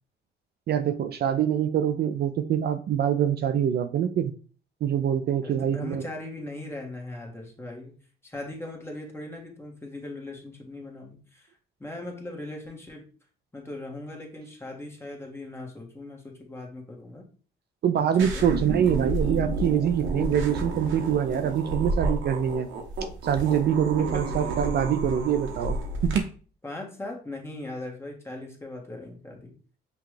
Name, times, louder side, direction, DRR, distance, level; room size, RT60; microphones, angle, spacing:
voice 1, 0.7-4.3 4.8-6.1 17.8-22.7 23.2-26.3, right 9 dB, 55° right, 8 dB, 0.4 m, -25 dB
voice 2, 5.4-7.9 8.2-11.5 11.8-13.1 13.5-17.3 18.2-18.5 24.1-24.7 26.6-29.5, left 2 dB, 10° left, 0 dB, 1.3 m, -39 dB
sound 1, 18.2-26.2, right 2 dB, 85° right, 1.0 m, -30 dB
5.8 x 2.4 x 3.2 m, 0.39 s
cardioid pair, 90°, 20 cm